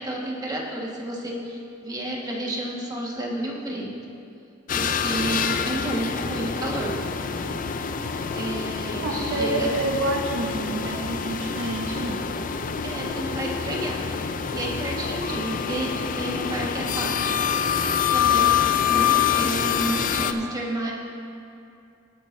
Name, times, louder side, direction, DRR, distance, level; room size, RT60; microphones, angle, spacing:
voice 1, 0.0-3.9 4.7-7.0 7.3-7.6 8.3-9.7 12.8-14.0 14.5-17.3 18.1-20.9, right 1 dB, 20° right, -3 dB, 1.5 m, -31 dB
sound 1, 4.7-20.3, left 7 dB, 45° left, 0.4 m, -26 dB
voice 2, 9.0-12.2, right 2 dB, 75° right, 0 dB, 0.9 m, -28 dB
19.0 x 8.8 x 2.6 m, 2.6 s
head